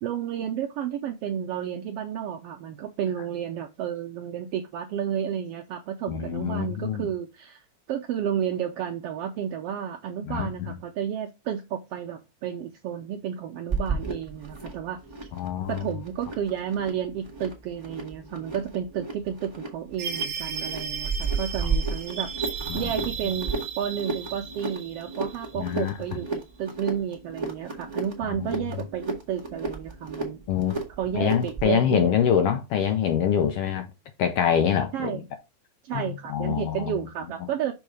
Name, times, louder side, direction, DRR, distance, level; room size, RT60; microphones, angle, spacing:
voice 1, 0.0-7.6 7.9-15.0 15.7-22.3 22.7-30.4 31.0-32.5 34.9-35.2 35.8-37.7, right 9 dB, 80° right, 1.4 m, -31 dB
voice 2, 6.1-7.1 10.2-10.5 15.3-15.9 22.7-22.9 25.6-25.9 28.2-28.5 30.5-30.7 31.1-33.9 34.2-35.2 35.9-37.0, left 9 dB, 75° left, 1.5 m, -25 dB
sound 1, 13.7-31.7, right 4 dB, 15° right, 1.2 m, -34 dB
sound 2, 20.0-26.2, right 6 dB, 55° right, 1.5 m, -35 dB
6.2 x 3.7 x 4.8 m
omnidirectional pair, 3.3 m